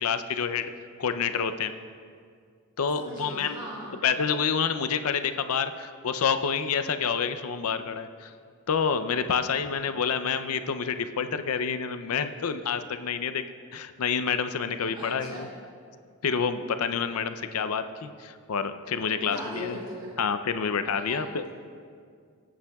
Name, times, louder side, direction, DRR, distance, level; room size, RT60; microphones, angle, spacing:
voice 1, 0.0-0.7 1.0-1.7 2.8-3.6 4.0-8.3 8.7-13.4 13.7-15.5 16.2-19.8 20.2-21.5, left 6 dB, 80° left, 10 dB, 0.5 m, -28 dB
voice 2, 2.9-4.0 14.8-15.5 19.1-20.1 20.9-21.5, equal, 20° right, -7 dB, 2.8 m, -39 dB
20.5 x 8.7 x 2.3 m, 2.2 s
head